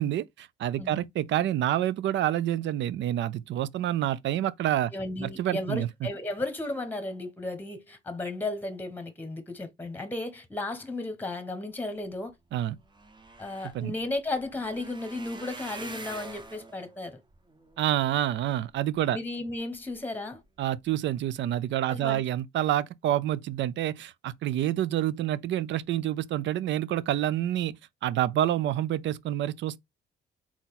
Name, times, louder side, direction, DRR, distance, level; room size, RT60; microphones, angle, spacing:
voice 1, 0.0-4.9 5.2-5.9 12.5-12.8 13.7-13.9 17.8-19.2 20.6-27.8 28.0-29.8, right 12 dB, 70° right, 0.5 m, -28 dB
voice 2, 4.9-12.3 13.4-17.2 19.1-20.4 21.9-22.2, left 2 dB, 10° left, 1.1 m, -34 dB
sound 1, 12.3-12.4 12.6-19.0 19.5-20.0 20.4-20.6 20.9-21.0, right 3 dB, 25° right, 0.9 m, -46 dB
4.0 x 2.9 x 4.0 m
cardioid pair, 90°, 20 cm